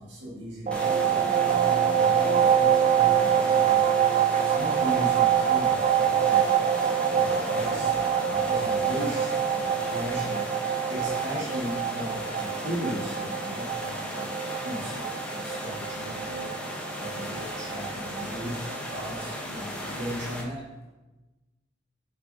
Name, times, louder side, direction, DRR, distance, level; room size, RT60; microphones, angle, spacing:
voice 1, 0.0-4.1 4.4-6.5 7.1-7.9 8.2-10.5 10.9-14.4 14.6-16.5 17.0-20.6, equal, 70° right, -5 dB, 1.8 m, -37 dB
Water vortices, 0.7-20.4, equal, 5° left, 0.9 m, -36 dB
sound 1, 0.7-19.2, right 8 dB, 35° right, 0.3 m, -25 dB
7.9 x 6.2 x 2.8 m, 1.1 s
head